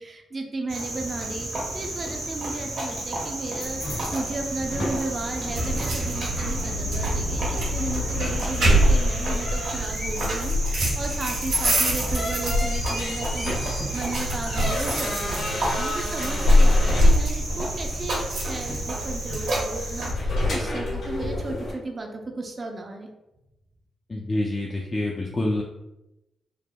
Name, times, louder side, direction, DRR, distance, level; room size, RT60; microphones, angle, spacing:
voice 1, 0.0-1.5 1.7-23.1, right 2 dB, 45° right, 3 dB, 0.4 m, -34 dB
Cricket, 0.7-20.1, right 1 dB, 70° right, 1.0 m, -32 dB
sound 1, 3.6-21.7, left 1 dB, 70° left, 1.4 m, -31 dB
sound 2, 5.5-19.6, equal, 90° right, 1.2 m, -25 dB
voice 2, 24.1-25.6, left 1 dB, 40° left, -1 dB, 0.4 m, -27 dB
3.4 x 2.0 x 2.2 m, 0.93 s
supercardioid pair, 45°, 0 cm